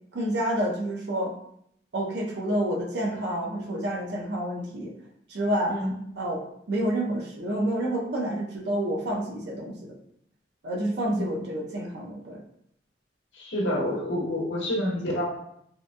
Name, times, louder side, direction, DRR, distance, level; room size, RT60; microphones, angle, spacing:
voice 1, 0.1-1.3 1.9-4.9 5.3-5.9 6.2-10.0 10.6-12.4, right 1 dB, 60° right, -1 dB, 0.6 m, -29 dB
voice 2, 11.1-11.4 13.3-15.3, left 1 dB, 80° left, -2 dB, 0.8 m, -28 dB
2.8 x 2.2 x 2.5 m, 0.72 s
head